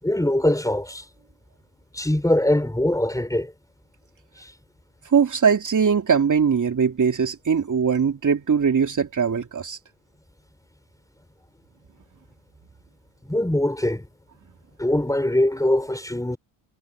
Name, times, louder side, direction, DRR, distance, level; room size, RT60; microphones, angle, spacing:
voice 1, 0.0-1.0 1.9-3.5 4.4-4.5 13.2-14.1 14.8-16.4, left 1 dB, 5° left, 4.4 m, -22 dB
voice 2, 5.1-9.8, right 6 dB, 35° right, 3.1 m, -21 dB
supercardioid pair, 70°, 50 cm